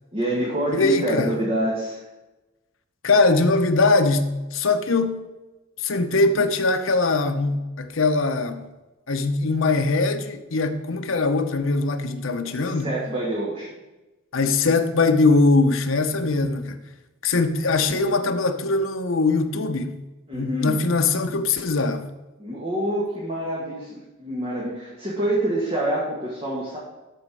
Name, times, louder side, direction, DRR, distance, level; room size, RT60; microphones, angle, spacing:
voice 1, 0.1-2.0 12.4-13.7 20.3-20.8 22.4-26.8, right 1 dB, 30° right, 2.2 m, -26 dB
voice 2, 0.7-1.3 3.0-5.3 5.8-8.7 9.1-12.9 14.3-16.8 17.2-19.9 20.3-22.1, left 3 dB, 65° left, 0.9 m, -21 dB
13.0 x 5.2 x 4.8 m
head